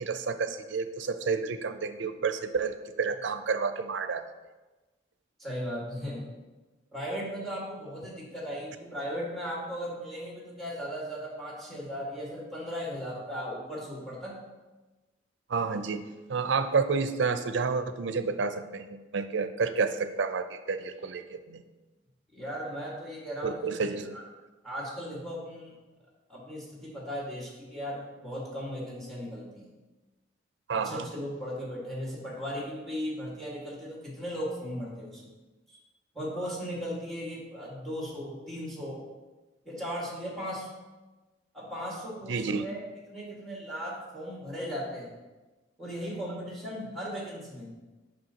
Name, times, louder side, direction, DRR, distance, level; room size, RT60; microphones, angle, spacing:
voice 1, 0.0-4.2 15.5-21.6 23.4-24.2 30.7-31.1 42.3-42.6, right 5 dB, 75° right, 10 dB, 0.5 m, -30 dB
voice 2, 5.4-6.3 6.9-14.4 21.5-21.6 22.3-24.2 24.6-25.7 26.3-29.7 30.7-35.2 36.1-39.0 39.7-40.7 41.5-42.8 43.1-45.1 45.8-47.7, equal, ahead, -5 dB, 1.8 m, -37 dB
7.6 x 5.7 x 2.9 m, 1.2 s
head